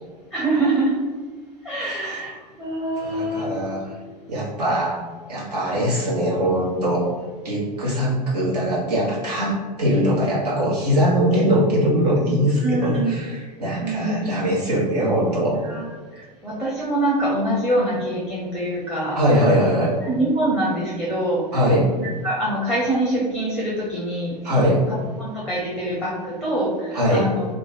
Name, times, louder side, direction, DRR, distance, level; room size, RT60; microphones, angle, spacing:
voice 1, 0.3-1.0 1.6-3.5 12.6-13.2 13.4-13.5 13.8-14.5 15.4-19.2 20.0-21.4 22.0-27.5, right 1 dB, ahead, -4 dB, 0.7 m, -25 dB
voice 2, 1.9-2.2 3.1-3.8 4.3-5.0 5.3-7.1 7.4-15.6 19.1-20.0 21.5-21.9 24.4-24.8 26.9-27.3, equal, 70° right, -6 dB, 1.5 m, -21 dB
3.0 x 2.4 x 4.1 m, 1.5 s
figure-of-eight pair, 90°, 21 cm